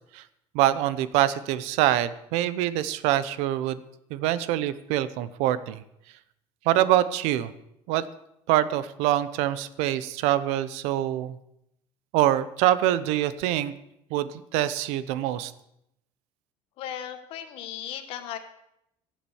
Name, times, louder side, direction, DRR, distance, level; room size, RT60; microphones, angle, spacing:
voice 1, 0.5-3.8 4.1-5.8 6.6-7.5 7.9-8.0 8.5-11.4 12.1-13.7 14.1-15.5, right 13 dB, 65° right, 15 dB, 0.8 m, -25 dB
voice 2, 16.8-18.4, left 10 dB, 50° left, 7 dB, 1.3 m, -36 dB
16.0 x 7.5 x 7.1 m, 0.80 s
cardioid pair, 165°, 12 cm